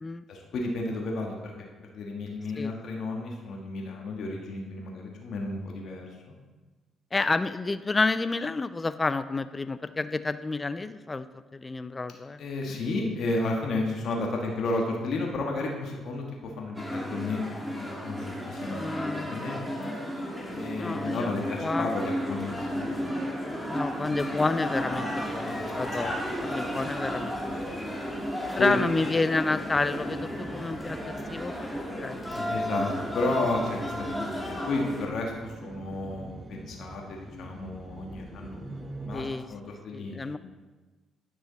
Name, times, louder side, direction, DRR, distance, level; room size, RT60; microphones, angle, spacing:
voice 1, 0.3-6.0 12.4-19.6 20.5-22.9 25.4-25.7 26.0-26.3 26.8-27.1 27.5-28.0 28.6-28.8 32.3-38.6 39.0-40.3, left 2 dB, 65° left, 0 dB, 1.3 m, -33 dB
voice 2, 7.1-12.4 18.7-19.5 20.7-21.9 23.7-27.8 28.5-32.2 37.2-37.5 39.1-39.5 39.9-40.4, left 3 dB, 25° left, 13 dB, 0.4 m, -30 dB
sound 1, 16.7-35.1, equal, 5° left, 2.3 m, -33 dB
sound 2, 22.4-39.3, right 2 dB, 35° right, 0.8 m, -45 dB
9.7 x 6.3 x 4.0 m, 1.3 s
supercardioid pair, 55°, 0 cm